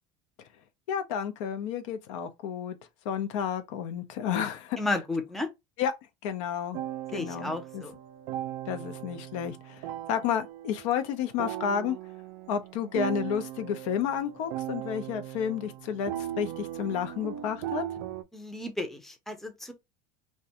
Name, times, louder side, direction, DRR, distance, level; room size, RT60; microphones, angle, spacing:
voice 1, 0.9-2.8 3.1-4.8 5.8-5.9 6.2-6.8 7.1-7.8 8.7-9.8 10.1-12.0 12.5-17.8, left 8 dB, 85° left, 0.5 m, -31 dB
voice 2, 4.8-5.5 7.1-7.9 18.3-19.7, left 2 dB, ahead, 0.5 m, -33 dB
sound 1, 6.7-18.2, right 12 dB, 70° right, 0.4 m, -38 dB
2.4 x 2.2 x 2.7 m
supercardioid pair, 115°, 16 cm